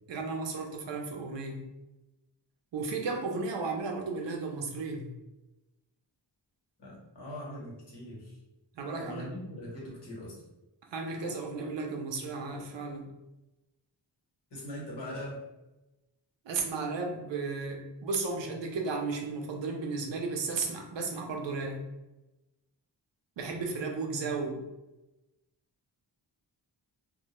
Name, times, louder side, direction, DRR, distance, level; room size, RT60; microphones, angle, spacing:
voice 1, 0.1-1.7 2.7-5.1 8.7-9.3 10.9-13.1 16.5-21.8 23.4-24.6, right 4 dB, 75° right, 3 dB, 0.5 m, -34 dB
voice 2, 6.8-8.4 9.0-10.4 14.5-15.4, left 1 dB, 60° left, -4 dB, 1.0 m, -41 dB
2.1 x 2.0 x 2.9 m, 1.0 s
wide cardioid pair, 100°, 45 cm